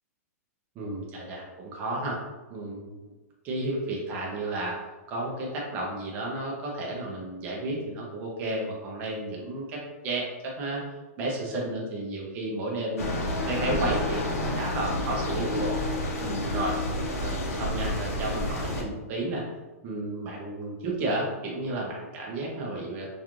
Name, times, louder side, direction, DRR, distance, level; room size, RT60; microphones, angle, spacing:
voice 1, 0.8-2.2 2.5-3.0 3.4-4.8 5.1-9.8 10.0-10.8 11.2-13.1 13.5-15.8 16.2-16.8 17.2-19.4 19.8-23.1, right 2 dB, 20° right, -2 dB, 0.4 m, -32 dB
sound 1, 13.0-18.8, left 1 dB, 65° left, 0.6 m, -29 dB
2.9 x 2.3 x 2.4 m, 1.2 s
hypercardioid pair, 170°, 8 cm